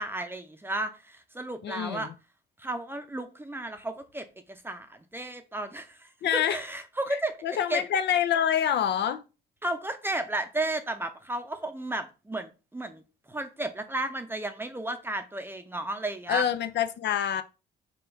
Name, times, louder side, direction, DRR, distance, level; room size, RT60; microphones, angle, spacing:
voice 1, 0.0-2.1 2.6-7.8 9.6-13.0 13.3-16.5, right 2 dB, 10° right, 0.6 m, -33 dB
voice 2, 1.6-2.1 6.2-6.6 7.4-9.2 16.3-17.4, left 9 dB, 60° left, 0.4 m, -26 dB
3.9 x 2.3 x 4.4 m
cardioid pair, 90°, 20 cm